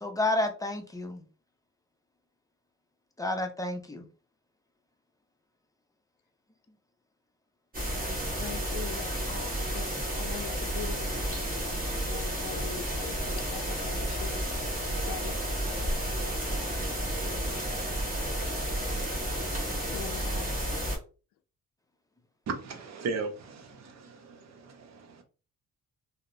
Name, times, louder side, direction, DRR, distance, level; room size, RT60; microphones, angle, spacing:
voice 1, 0.0-1.2 3.2-4.1, left 2 dB, 10° left, 0.5 m, -30 dB
sound 1, 7.7-21.0, right 1 dB, 30° right, 1.3 m, -31 dB
voice 2, 8.4-11.6 12.1-14.4 14.9-15.4 19.9-20.6, left 8 dB, 85° left, 0.5 m, -43 dB
voice 3, 22.5-25.2, right 4 dB, 60° right, 0.8 m, -37 dB
2.8 x 2.0 x 2.6 m
cardioid pair, 90°, 30 cm